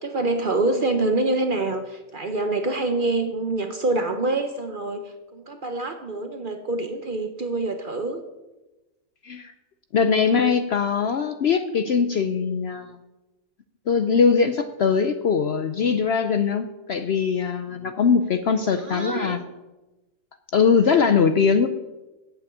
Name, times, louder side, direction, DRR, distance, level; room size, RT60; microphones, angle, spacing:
voice 1, 0.0-8.2 18.7-19.4, right 2 dB, 45° right, 7 dB, 0.8 m, -26 dB
voice 2, 9.9-13.0 13.9-19.4 20.5-21.7, left 6 dB, 60° left, 9 dB, 0.7 m, -21 dB
8.5 x 7.8 x 8.5 m, 1.1 s
omnidirectional pair, 1.6 m